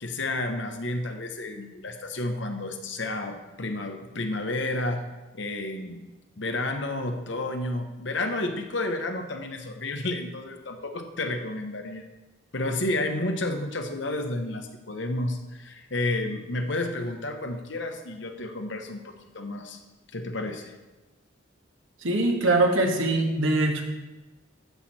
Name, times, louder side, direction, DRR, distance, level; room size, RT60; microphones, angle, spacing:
voice 1, 0.0-5.0 5.3-6.0 6.4-12.1 12.5-19.8 20.1-20.7, left 2 dB, 65° left, 5 dB, 1.2 m, -31 dB
voice 2, 22.0-23.8, right 2 dB, 80° right, 2 dB, 1.5 m, -22 dB
13.5 x 6.6 x 4.3 m, 1.1 s
head